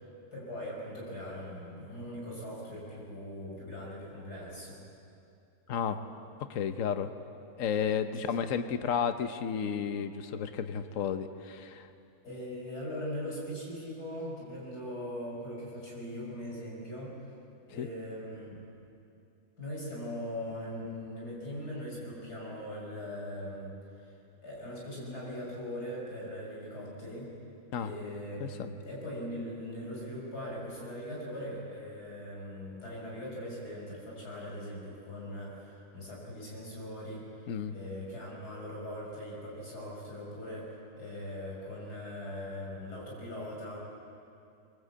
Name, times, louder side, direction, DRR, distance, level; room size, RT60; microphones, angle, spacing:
voice 1, 0.3-4.8 8.2-8.3 12.2-17.2 17.7-18.6 19.6-24.1 24.4-27.3 27.8-37.3 37.7-43.8, equal, 85° left, -3 dB, 6.7 m, -40 dB
voice 2, 6.5-7.1 7.6-11.9 17.8-17.9 27.7-27.9 28.4-28.7 37.5-37.7, left 7 dB, 60° left, 9 dB, 1.3 m, -32 dB
22.5 x 21.5 x 8.6 m, 2.6 s
omnidirectional pair, 1.6 m